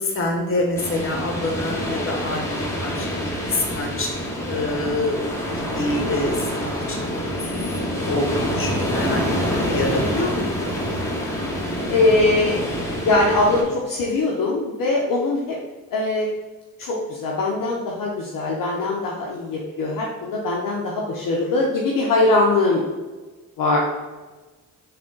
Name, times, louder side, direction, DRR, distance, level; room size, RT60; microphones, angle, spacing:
voice 1, 0.0-4.1 4.4-10.7, left 2 dB, 30° left, 0 dB, 1.1 m, -27 dB
sound 1, 0.8-13.6, equal, 5° left, 1.1 m, -26 dB
voice 2, 11.9-12.6 13.0-15.6 15.9-16.3 16.8-22.8 23.6-23.8, left 2 dB, 50° left, -3 dB, 0.7 m, -21 dB
3.5 x 2.5 x 3.8 m, 1.3 s
hypercardioid pair, 50°, 44 cm